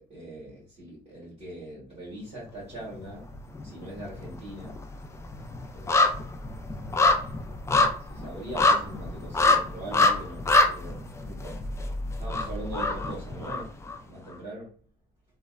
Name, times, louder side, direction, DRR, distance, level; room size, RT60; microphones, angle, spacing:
voice 1, 0.0-3.2 3.6-4.8 5.7-6.2 8.1-11.6 12.2-13.7 14.0-14.7, right 1 dB, 40° right, -8 dB, 1.5 m, -41 dB
sound 1, 2.9-3.7 4.0-14.0 14.3-14.4, left 2 dB, 15° left, 0.3 m, -25 dB
3.1 x 2.1 x 2.3 m, 0.41 s
cardioid pair, 110°, 17 cm